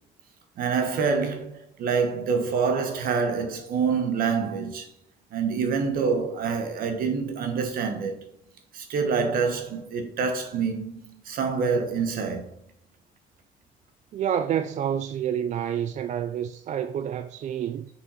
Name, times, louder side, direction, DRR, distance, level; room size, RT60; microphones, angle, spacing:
voice 1, 0.6-4.9 5.3-8.3 8.7-12.5, right 5 dB, 75° right, 1.5 m, -26 dB
voice 2, 14.1-17.9, right 9 dB, 50° right, 0.4 m, -28 dB
6.8 x 5.7 x 4.2 m
cardioid pair, 140°, 15 cm